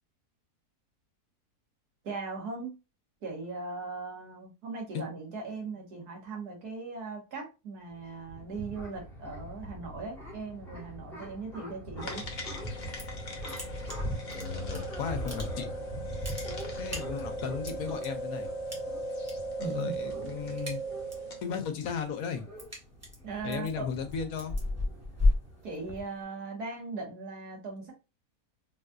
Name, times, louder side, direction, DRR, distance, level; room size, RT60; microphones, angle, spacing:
voice 1, 2.0-2.8 3.2-12.3 19.6-20.0 23.2-23.9 25.6-27.9, right 3 dB, 75° right, 1.7 m, -39 dB
sound 1, 7.9-26.0, equal, ahead, 0.9 m, -42 dB
sound 2, 12.0-21.5, right 1 dB, 45° left, 0.6 m, -38 dB
sound 3, 12.7-13.2 13.5-14.8 15.1-15.8 16.1-18.1 18.7-19.3 19.6-20.0 20.3-21.3 21.7-26.2, left 2 dB, 20° right, 0.4 m, -32 dB
voice 2, 14.3-15.7 16.0-16.1 16.8-18.5 19.6-20.8 21.4-22.4 23.4-24.6, left 6 dB, 70° left, 1.0 m, -35 dB
4.0 x 2.5 x 2.2 m
omnidirectional pair, 1.7 m